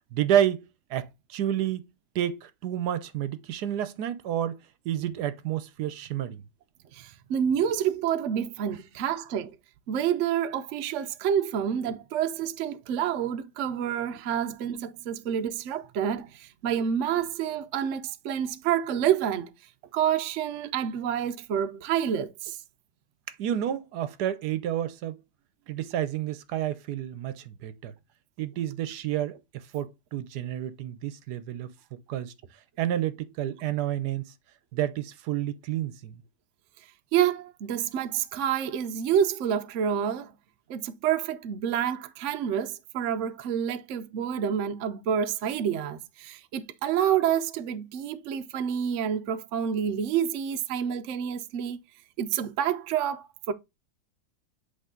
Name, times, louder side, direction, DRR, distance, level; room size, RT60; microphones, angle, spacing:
voice 1, 0.1-1.9 2.1-6.4 23.3-25.2 25.7-27.9 28.4-31.7 32.1-32.3 32.8-34.3 34.7-36.2, right 11 dB, 80° right, 1.2 m, -30 dB
voice 2, 6.9-9.5 9.9-19.5 19.9-22.6 37.1-40.3 40.7-51.8 52.2-53.5, right 9 dB, 65° right, 0.8 m, -28 dB
8.1 x 3.3 x 3.7 m
omnidirectional pair, 1.8 m